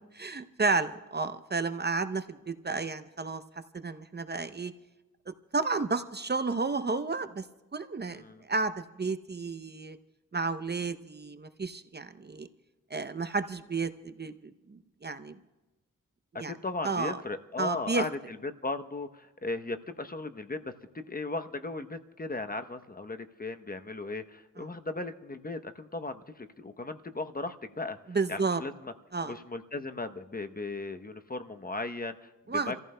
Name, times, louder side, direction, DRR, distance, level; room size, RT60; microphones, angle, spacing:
voice 1, 0.2-3.4 3.7-4.7 5.3-7.4 7.7-10.0 10.3-12.5 12.9-15.4 16.4-16.5 16.8-17.2 17.6-18.1 24.6-24.7 28.1-28.6 29.1-29.4 32.5-32.8, right 4 dB, 30° right, 10 dB, 0.7 m, -32 dB
voice 2, 8.1-8.4 16.3-20.7 21.1-28.0 28.3-28.9 29.2-32.8, left 3 dB, 30° left, 8 dB, 0.8 m, -37 dB
29.5 x 14.5 x 2.2 m, 1.1 s
cardioid pair, 50°, 31 cm